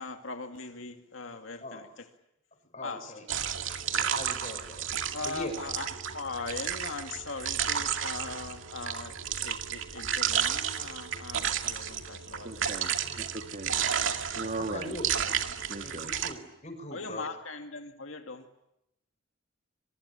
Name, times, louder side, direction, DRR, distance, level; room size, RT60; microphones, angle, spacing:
voice 1, 0.0-1.8 2.8-3.0 5.1-5.9 6.1-9.1 9.4-12.5 14.4-14.5 16.9-18.4, left 3 dB, 75° left, 5 dB, 2.2 m, -40 dB
voice 2, 2.7-3.3 3.9-4.9 5.2-5.6 13.6-13.7 14.6-15.1 15.8-17.4, left 1 dB, 35° left, 6 dB, 6.5 m, -41 dB
sound 1, 3.3-16.3, right 8 dB, 70° right, 2.2 m, -32 dB
voice 3, 12.4-13.8 14.4-15.0 15.7-16.1, right 2 dB, 40° right, 6 dB, 1.7 m, -38 dB
24.5 x 24.0 x 10.0 m, 0.85 s
head